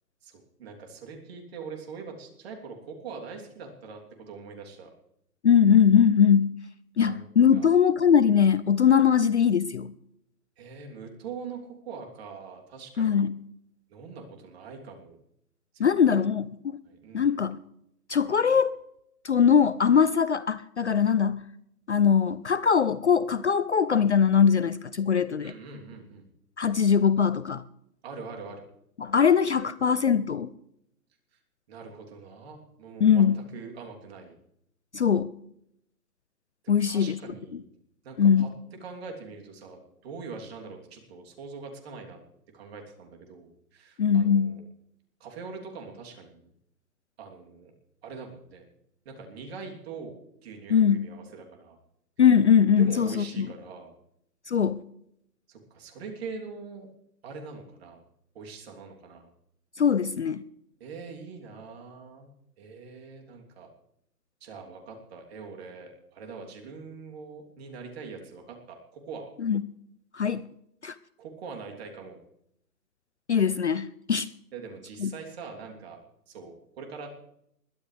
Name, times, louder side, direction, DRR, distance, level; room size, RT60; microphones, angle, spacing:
voice 1, 0.2-4.9 7.0-7.2 7.5-7.7 10.6-13.3 13.9-15.2 15.7-16.3 16.8-17.3 25.4-26.2 28.0-28.6 31.7-34.3 36.6-37.6 38.0-38.5 38.8-42.2 42.5-44.6 45.2-46.5 47.2-47.7 48.0-48.7 49.0-50.1 50.4-51.8 52.7-53.9 55.5-56.9 57.2-58.0 58.3-59.3 60.8-62.3 62.6-63.7 64.4-69.3 71.2-72.2 74.5-76.0 76.3-77.1, right 5 dB, 40° right, 1 dB, 3.3 m, -43 dB
voice 2, 5.4-6.5 7.0-9.9 13.0-13.4 15.8-16.8 17.1-17.6 18.1-18.8 19.2-21.4 21.9-25.5 26.6-27.6 29.0-30.5 33.0-33.4 34.9-35.3 36.7-37.2 37.5-37.6 38.2-38.5 44.0-44.6 50.7-51.1 52.2-53.5 54.5-54.8 59.8-60.4 69.4-69.6 70.1-70.5 70.8-71.0 73.3-74.3 75.0-75.1, left 7 dB, 45° left, 14 dB, 0.5 m, -21 dB
22.0 x 14.0 x 3.4 m, 0.76 s
hypercardioid pair, 155°, 49 cm